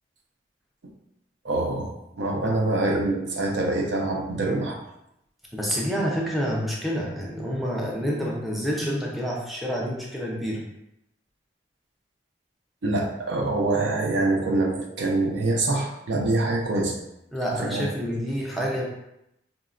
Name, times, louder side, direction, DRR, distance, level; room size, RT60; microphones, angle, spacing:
voice 1, 1.4-4.8 12.8-17.0 17.7-18.1, right 2 dB, 80° right, 0 dB, 0.5 m, -25 dB
voice 2, 5.5-10.6 17.3-18.9, equal, ahead, -4 dB, 0.4 m, -28 dB
3.9 x 2.1 x 2.4 m, 0.84 s
head